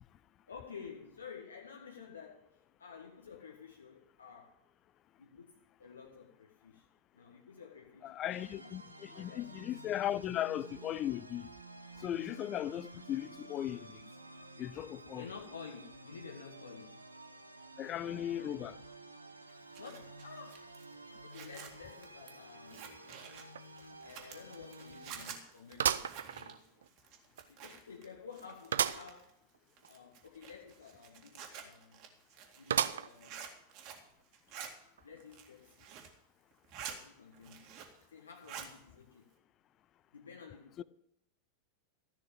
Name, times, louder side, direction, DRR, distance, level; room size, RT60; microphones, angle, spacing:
voice 1, 0.5-2.5 2.8-4.6 5.2-6.9 7.1-8.4 9.1-9.7 15.1-17.0 18.0-18.8 19.8-20.7 21.2-22.9 24.0-26.6 27.5-29.4 29.9-32.1 32.5-33.6 35.0-35.9 36.9-37.7 38.0-39.3 40.1-40.8, left 6 dB, 70° left, 1.6 m, -52 dB
voice 2, 8.0-11.5 12.0-14.0 14.6-15.3 17.8-18.7 40.8-40.9, left 12 dB, 30° left, 0.4 m, -37 dB
sound 1, 8.3-25.4, right 2 dB, 85° right, 0.9 m, -52 dB
Zipper (clothing), 19.5-28.1 28.3-29.3 29.8-34.1 34.3-34.7 35.2-36.2 36.5-37.0 37.3-38.0 38.3-38.7, right 8 dB, 40° right, 2.1 m, -49 dB
sound 2, 23.5-23.6 24.1-24.2 25.8-26.9 27.4-27.5 28.7-29.1 29.5-29.6 29.8-29.9 32.7-33.3 33.9-34.0 35.0-35.1, right 9 dB, 65° right, 0.5 m, -33 dB
14.5 x 6.2 x 8.8 m
figure-of-eight pair, 90°, 0 cm